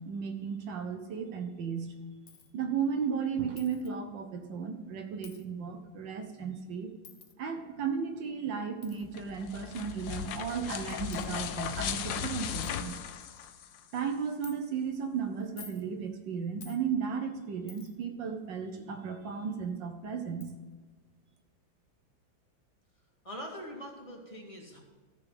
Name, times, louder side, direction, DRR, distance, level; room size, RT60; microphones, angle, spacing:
voice 1, 0.0-1.9 2.5-6.9 7.4-12.9 13.9-20.6, right 6 dB, 70° right, 5 dB, 1.6 m, -35 dB
Coin (dropping), 2.3-2.5 3.6-3.9 5.2-5.4 7.0-7.3 8.8-9.0 10.0-10.1 10.7-10.8 11.1-11.3 11.9-12.0 12.3-12.4 12.6-12.8 13.2-13.5 14.4-14.6 15.4-15.8 16.6-16.8 17.7-18.0 19.7-19.8 20.4-20.5, left 6 dB, 55° left, 0.6 m, -51 dB
sound 1, 9.0-14.0, left 9 dB, 75° left, 1.4 m, -37 dB
voice 2, 23.2-24.8, equal, 15° left, -1 dB, 2.1 m, -43 dB
13.5 x 6.6 x 5.9 m, 1.3 s
omnidirectional pair, 2.1 m